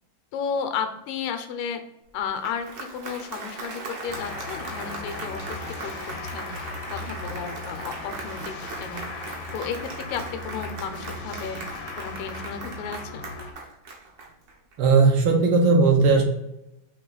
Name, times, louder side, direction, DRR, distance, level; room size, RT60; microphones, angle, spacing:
voice 1, 0.3-1.8 2.1-6.5 6.9-9.0 9.5-11.6 12.0-13.3, left 6 dB, 90° left, 7 dB, 1.5 m, -33 dB
Applause, 2.2-14.7, right 3 dB, 60° right, 1.1 m, -39 dB
sound 1, 4.1-13.5, left 3 dB, 70° left, 1.1 m, -38 dB
voice 2, 14.8-16.2, right 4 dB, 80° right, 1 dB, 1.8 m, -17 dB
4.7 x 2.8 x 3.8 m, 0.89 s
omnidirectional pair, 2.3 m